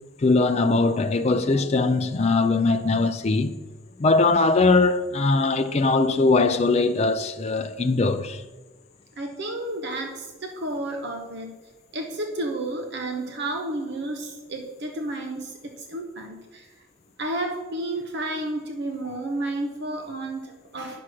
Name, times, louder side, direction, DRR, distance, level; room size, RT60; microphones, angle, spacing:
voice 1, 0.2-3.6 4.0-8.4, left 3 dB, 30° left, 0.4 m, -21 dB
voice 2, 9.2-11.5 11.9-16.7 17.2-21.0, right 2 dB, 55° right, 0.9 m, -31 dB
9.7 x 6.0 x 6.2 m
head